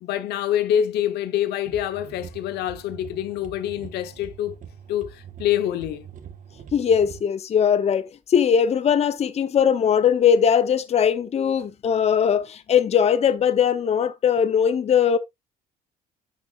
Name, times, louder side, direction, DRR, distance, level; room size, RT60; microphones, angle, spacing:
voice 1, 0.0-4.6 4.9-6.1, left 10 dB, 80° left, 0.9 m, -26 dB
sound 1, 1.6-7.2, right 8 dB, 50° right, 1.4 m, -43 dB
voice 2, 6.7-15.2, left 8 dB, 40° left, 0.8 m, -20 dB
11.0 x 6.5 x 2.4 m
cardioid pair, 110°, 17 cm